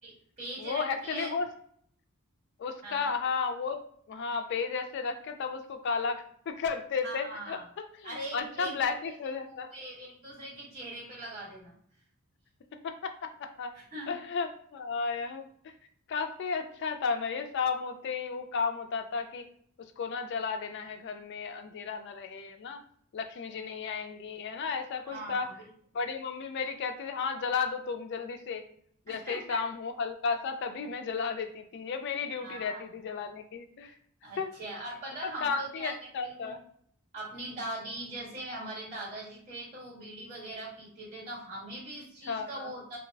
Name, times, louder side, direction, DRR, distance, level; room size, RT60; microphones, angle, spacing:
voice 1, 0.0-1.3 2.8-3.1 7.0-7.6 8.0-8.9 9.5-11.7 13.7-14.1 25.0-25.5 29.1-29.6 32.4-32.8 34.2-35.9 36.2-36.6 37.1-43.0, right 1 dB, 35° right, -8 dB, 1.4 m, -41 dB
voice 2, 0.6-1.5 2.6-3.8 4.1-9.7 12.8-13.7 14.1-15.5 16.1-19.5 20.0-22.8 23.1-25.5 25.9-28.6 29.1-33.9 34.4-34.5 35.2-36.6 42.3-42.7, left 5 dB, 50° left, 6 dB, 0.3 m, -33 dB
2.3 x 2.1 x 3.3 m, 0.64 s
head